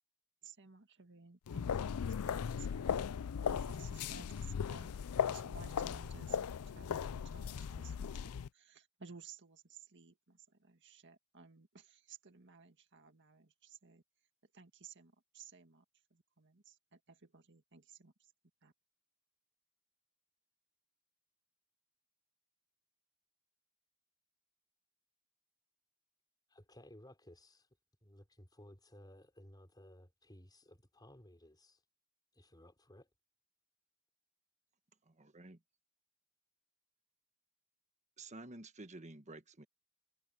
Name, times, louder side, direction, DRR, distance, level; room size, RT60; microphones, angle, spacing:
voice 1, 0.4-2.9 3.4-4.9 5.2-8.1 8.5-14.0 14.5-15.8 16.1-18.1 18.6-18.7, right 5 dB, 55° right, 1.9 m, -57 dB
sound 1, 1.5-8.5, left 7 dB, 90° left, 0.4 m, -38 dB
voice 2, 26.5-27.7 28.0-31.8 32.3-33.1, left 1 dB, 20° left, 5.0 m, -58 dB
voice 3, 35.1-35.6 38.2-39.6, right 2 dB, 30° right, 1.4 m, -51 dB
head